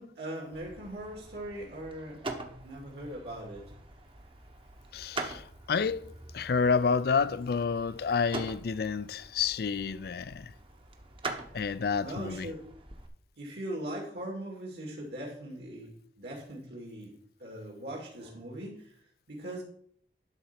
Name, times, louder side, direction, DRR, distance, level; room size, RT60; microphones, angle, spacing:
voice 1, 0.0-3.6 11.5-11.7 12.0-12.7 13.4-18.9 19.3-19.6, right 1 dB, 65° right, 2.3 m, -40 dB
sound 1, 0.5-13.1, right 2 dB, 30° right, 1.0 m, -44 dB
voice 2, 4.9-10.5 11.5-12.5, left 5 dB, 60° left, 0.4 m, -29 dB
11.5 x 4.1 x 5.9 m
head